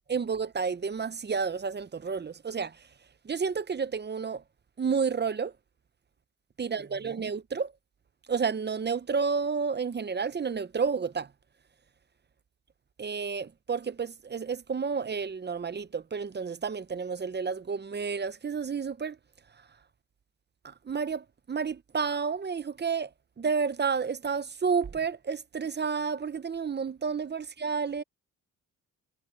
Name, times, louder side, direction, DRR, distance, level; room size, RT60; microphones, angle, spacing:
voice 1, 0.1-2.7 3.2-4.4 4.8-5.5 6.6-7.7 8.3-11.3 13.0-19.2 20.6-23.1 23.4-28.0, right 5 dB, 30° right, 0.7 m, -30 dB
cardioid pair, 100°, 35 cm